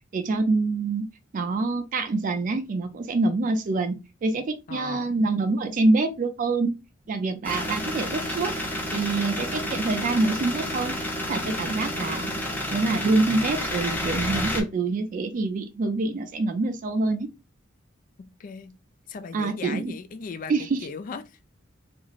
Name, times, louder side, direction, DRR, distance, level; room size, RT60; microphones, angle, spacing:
voice 1, 0.1-1.1 1.3-4.0 4.2-6.7 7.1-8.5 8.9-10.9 11.3-12.3 12.7-17.3 19.3-19.9 20.5-20.8, right 3 dB, 40° right, 0.3 m, -25 dB
voice 2, 4.7-5.1 18.4-18.7 19.1-21.4, left 5 dB, 40° left, 0.3 m, -37 dB
sound 1, 7.4-14.6, left 1 dB, 10° left, 0.7 m, -30 dB
2.9 x 2.5 x 2.4 m
head